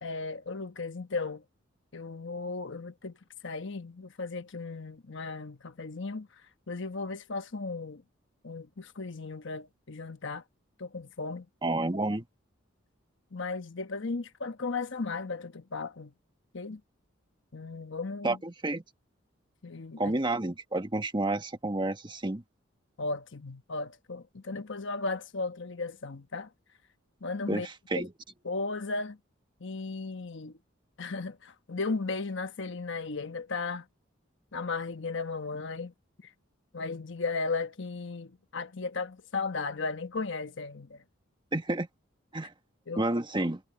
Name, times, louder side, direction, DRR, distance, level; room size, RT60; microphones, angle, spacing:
voice 1, 0.0-1.4 1.9-3.2 3.4-6.3 6.7-8.0 8.4-10.4 10.8-11.5 13.3-16.1 16.5-16.8 17.5-18.4 19.6-20.2 23.0-26.5 27.2-27.7 27.9-28.0 28.4-29.2 29.6-30.5 31.0-33.9 34.5-35.9 36.2-36.3 36.7-41.0 42.9-43.0, left 3 dB, 65° left, 1.1 m, -35 dB
voice 2, 11.6-12.2 18.2-18.8 20.0-22.4 27.5-28.1 41.5-41.9 42.3-42.5 43.0-43.6, right 2 dB, 25° right, 1.5 m, -30 dB
head